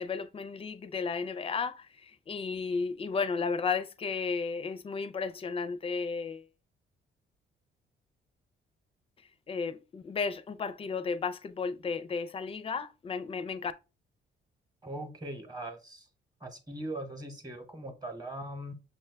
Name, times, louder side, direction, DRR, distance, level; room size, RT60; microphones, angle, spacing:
voice 1, 0.0-6.5 9.5-13.7, left 5 dB, 30° left, 0.4 m, -33 dB
voice 2, 14.8-16.1 16.4-18.7, right 1 dB, 20° right, 0.9 m, -40 dB
6.3 x 2.2 x 3.3 m
cardioid pair, 90°, 20 cm